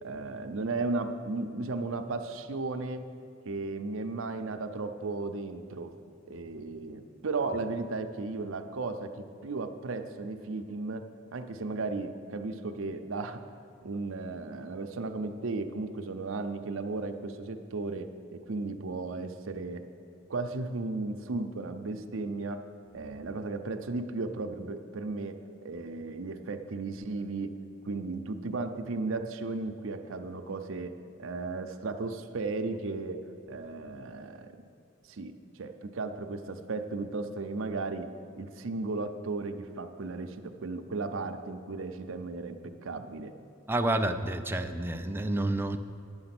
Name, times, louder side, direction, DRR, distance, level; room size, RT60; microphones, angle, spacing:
voice 1, 0.0-3.0 3.4-5.9 6.3-13.4 13.8-19.8 20.3-22.6 22.9-27.6 27.9-30.9 31.2-33.2 33.5-34.5 35.1-43.3, right 3 dB, 75° right, 7 dB, 0.6 m, -35 dB
voice 2, 43.7-45.8, right 1 dB, 10° right, 7 dB, 0.4 m, -29 dB
10.5 x 7.8 x 5.9 m, 2.8 s
head